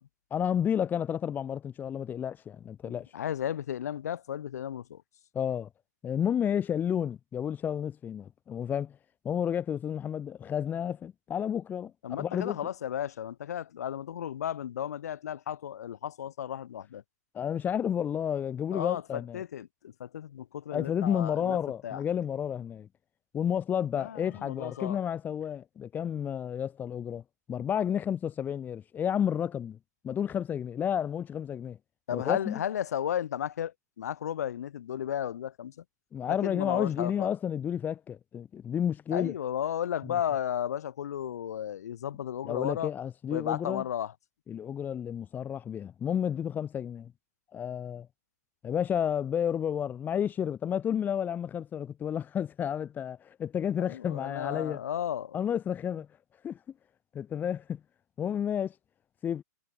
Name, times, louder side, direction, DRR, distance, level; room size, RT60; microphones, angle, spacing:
voice 1, 0.3-3.1 5.3-5.7 6.0-8.9 9.2-12.6 17.3-19.4 20.7-22.9 23.3-27.2 27.5-29.8 30.0-31.8 32.1-32.6 36.1-39.3 40.0-40.1 42.4-43.8 44.5-47.1 47.5-48.1 48.6-54.8 55.3-56.1 56.4-56.6 57.1-57.8 58.2-58.7 59.2-59.4, left 9 dB, 20° left, 5.0 m, -31 dB
voice 2, 2.8-5.0 12.0-17.0 18.7-21.6 21.8-22.0 24.0-25.0 32.1-35.8 36.3-37.3 39.1-42.9 43.3-44.1 53.8-55.4, left 10 dB, 60° left, 7.9 m, -34 dB
figure-of-eight pair, 120°, 10 cm